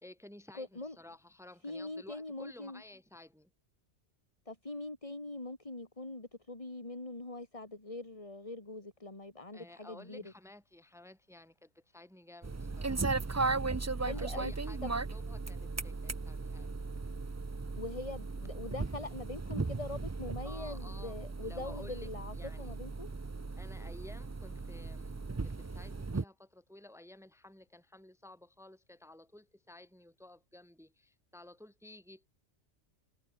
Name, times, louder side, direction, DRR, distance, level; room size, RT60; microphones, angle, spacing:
voice 1, 0.0-3.5 9.5-13.0 13.7-16.8 20.4-21.2 21.4-22.7 23.6-25.2 25.4-32.3, left 1 dB, ahead, 2.0 m, -54 dB
voice 2, 0.5-1.0 1.6-2.8 4.5-10.2 14.0-14.5 14.8-14.9 17.8-23.1, left 2 dB, 30° left, 2.9 m, -43 dB
sound 1, 12.4-26.2, right 3 dB, 25° right, 0.3 m, -37 dB
omnidirectional pair, 1.2 m